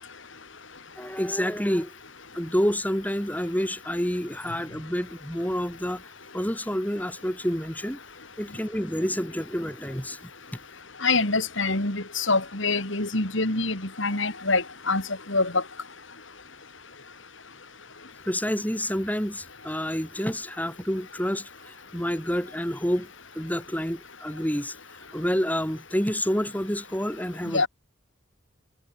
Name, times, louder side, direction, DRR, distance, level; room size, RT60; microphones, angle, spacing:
voice 1, 1.0-1.9 2.3-6.0 6.3-8.0 8.4-10.2 10.5-10.6 18.3-23.1 23.3-24.8 25.1-27.7, equal, 10° left, 5.5 m, -28 dB
voice 2, 11.0-15.0 15.3-15.6 27.5-27.7, left 3 dB, 65° left, 4.0 m, -25 dB
head